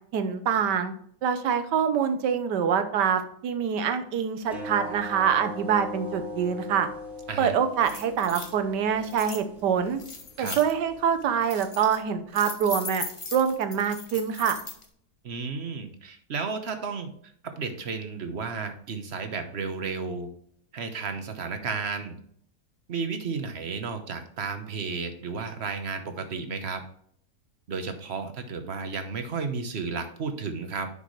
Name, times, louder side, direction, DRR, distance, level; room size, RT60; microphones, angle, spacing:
voice 1, 0.1-0.9 1.2-6.9 7.4-10.0 10.4-13.0 13.3-14.6, right 7 dB, 80° right, 9 dB, 1.5 m, -25 dB
sound 1, 4.4-11.4, left 1 dB, ahead, 2.8 m, -41 dB
sound 2, 7.4-7.5 7.8-8.5 9.0-9.4 10.0-10.7 11.2-12.0 12.3-14.8, left 3 dB, 25° left, 0.8 m, -38 dB
voice 2, 15.2-17.1 17.4-20.3 20.7-22.2 22.9-26.8 27.7-30.9, right 5 dB, 45° right, 7 dB, 1.1 m, -33 dB
10.0 x 5.5 x 3.2 m, 0.64 s
omnidirectional pair, 1.8 m